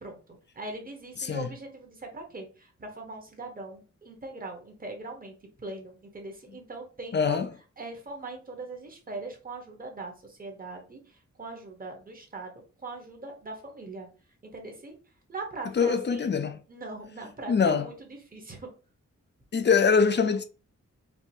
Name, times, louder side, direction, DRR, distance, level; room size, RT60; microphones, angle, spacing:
voice 1, 0.0-5.3 5.6-7.4 7.8-14.1 14.4-15.0 15.3-16.3 16.7-18.7, right 2 dB, 30° right, 1.0 m, -41 dB
voice 2, 7.1-7.5 15.8-16.6 17.5-17.9 19.5-20.4, left 5 dB, 40° left, 0.4 m, -23 dB
4.5 x 2.6 x 2.7 m
wide cardioid pair, 145°, 30 cm